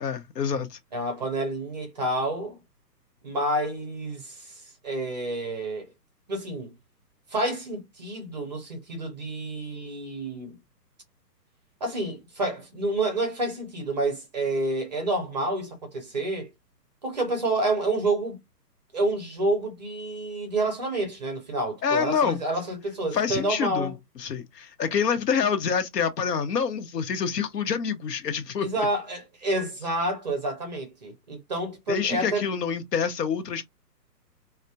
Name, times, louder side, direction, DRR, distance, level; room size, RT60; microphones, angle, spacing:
voice 1, 0.0-0.8 21.8-22.4 23.1-28.7 31.9-33.6, left 6 dB, 75° left, 0.8 m, -27 dB
voice 2, 0.9-2.6 3.2-5.9 6.3-6.7 7.3-10.5 11.8-16.5 17.0-18.4 18.9-24.0 28.6-32.5, right 2 dB, 25° right, 0.5 m, -29 dB
2.2 x 2.1 x 2.7 m
hypercardioid pair, 145°, 50 cm